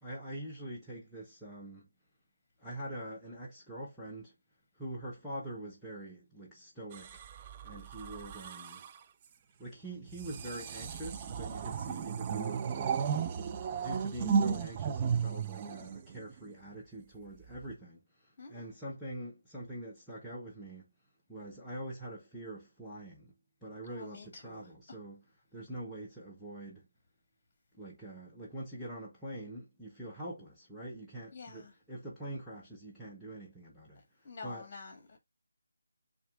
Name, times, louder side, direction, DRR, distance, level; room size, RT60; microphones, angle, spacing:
voice 1, 0.0-1.9 2.6-4.3 4.7-7.2 7.6-8.8 9.6-13.1 13.7-20.9 21.3-23.3 23.6-25.2 25.5-26.9 27.8-34.7, right 1 dB, 5° left, 0.9 m, -44 dB
sound 1, 6.9-9.0 10.1-16.5 17.4-17.7, right 6 dB, 25° right, 0.4 m, -34 dB
voice 2, 18.4-18.7 23.9-24.7 31.3-31.7 34.2-35.2, left 4 dB, 35° left, 1.7 m, -48 dB
7.0 x 2.5 x 2.4 m
figure-of-eight pair, 160°, 0 cm